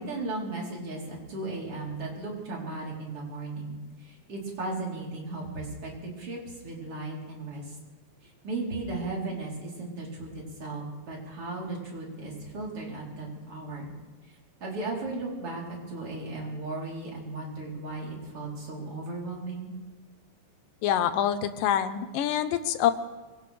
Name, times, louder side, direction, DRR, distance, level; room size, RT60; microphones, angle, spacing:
voice 1, 0.0-7.8 8.2-13.9 14.6-15.6 15.9-19.7, right 2 dB, 45° right, -3 dB, 4.5 m, -36 dB
voice 2, 20.8-22.9, left 10 dB, 90° left, 11 dB, 2.5 m, -26 dB
24.0 x 17.5 x 3.4 m, 1.2 s
omnidirectional pair, 3.8 m